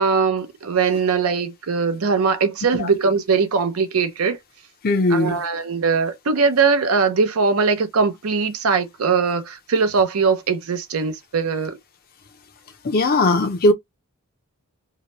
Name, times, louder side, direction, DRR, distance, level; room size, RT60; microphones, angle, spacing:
voice 1, 0.0-4.4 5.1-11.8, right 5 dB, 75° right, 0.6 m, -21 dB
voice 2, 4.8-5.4 12.8-13.7, left 2 dB, 45° left, 0.5 m, -18 dB
2.8 x 2.1 x 2.9 m
head